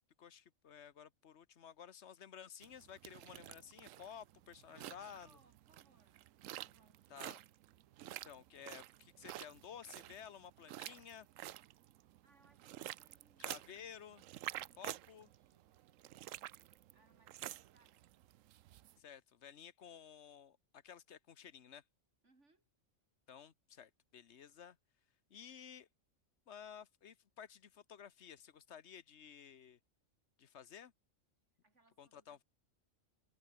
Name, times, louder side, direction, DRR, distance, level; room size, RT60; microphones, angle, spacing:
voice 1, 0.2-5.4 7.1-7.4 8.1-11.3 13.4-14.2 14.8-15.3 19.0-21.8 23.3-24.8 25.3-25.9 26.5-29.8 30.4-30.9 32.0-32.4, left 8 dB, 65° left, 1.3 m, -54 dB
sound 1, 2.6-18.9, right 13 dB, 85° right, 1.0 m, -50 dB
voice 2, 4.7-7.2 12.2-14.0 14.3-16.2 16.9-18.1 22.2-22.7 31.6-32.4, right 2 dB, 65° right, 4.5 m, -72 dB
omnidirectional pair, 1.3 m